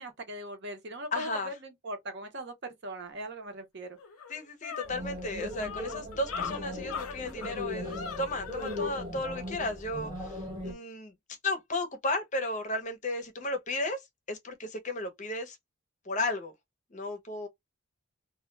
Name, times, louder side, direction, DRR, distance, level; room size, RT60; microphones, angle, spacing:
voice 1, 0.0-4.0, right 1 dB, 50° right, 0.7 m, -40 dB
voice 2, 1.1-1.5 4.3-11.1 11.4-14.0 14.3-15.6 16.1-16.5 16.9-17.5, left 2 dB, 35° left, 0.6 m, -34 dB
sound 1, 3.5-3.6 4.0-9.0, left 6 dB, 85° left, 0.5 m, -40 dB
sound 2, 4.8-10.7, left 1 dB, 20° right, 0.9 m, -39 dB
2.2 x 2.1 x 3.0 m
head